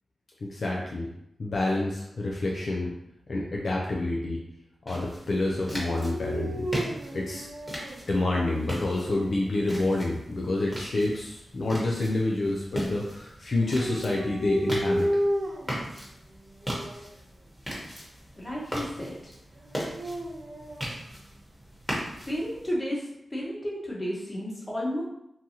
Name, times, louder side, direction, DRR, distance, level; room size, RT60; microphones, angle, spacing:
voice 1, 0.4-1.1 1.4-2.9 3.3-4.4 4.9-6.7 7.1-7.5 8.1-15.1, left 2 dB, 65° left, -2 dB, 0.4 m, -28 dB
sound 1, 4.9-22.7, equal, 5° left, 1.1 m, -39 dB
Dog, 5.8-8.0 8.6-9.4 13.5-15.8 16.6-17.1 19.6-20.9, equal, 70° right, 0.5 m, -32 dB
voice 2, 18.4-19.2 22.3-25.0, equal, 25° left, -4 dB, 1.0 m, -32 dB
2.7 x 2.3 x 2.8 m, 0.79 s
cardioid pair, 40°, 0 cm